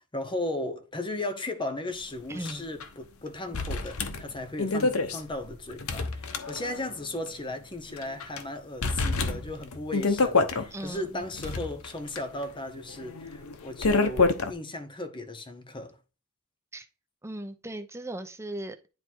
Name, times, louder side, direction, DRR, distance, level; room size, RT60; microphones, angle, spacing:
voice 1, 0.0-16.0, left 2 dB, 25° left, 1.0 m, -36 dB
voice 2, 2.3-2.7 10.7-11.2 16.7-16.9 17.2-18.9, right 1 dB, 15° right, 0.8 m, -38 dB
sound 1, 2.5-2.6 2.8-2.9 3.5-6.9 7.3-7.4 8.0-8.4 8.8-10.7 11.2-14.5, left 3 dB, 70° left, 1.0 m, -28 dB
10.0 x 3.4 x 4.6 m
head